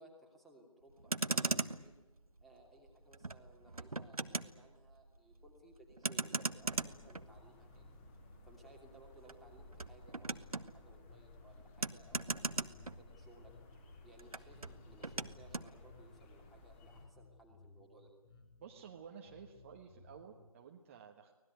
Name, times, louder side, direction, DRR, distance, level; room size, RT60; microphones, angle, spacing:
voice 1, 0.0-1.9 2.4-7.9 8.5-13.5 14.0-18.1, right 1 dB, ahead, 1 dB, 2.8 m, -61 dB
Motor vehicle (road), 0.9-13.5 13.8-15.7, right 3 dB, 85° right, 1.3 m, -41 dB
sound 1, 6.6-17.0, left 3 dB, 20° left, 3.9 m, -58 dB
Bass guitar, 11.0-20.5, left 3 dB, 45° left, 5.6 m, -62 dB
voice 2, 18.6-21.3, right 7 dB, 25° right, 2 dB, 1.4 m, -53 dB
24.5 x 19.0 x 9.3 m, 1.2 s
figure-of-eight pair, 155°, 18 cm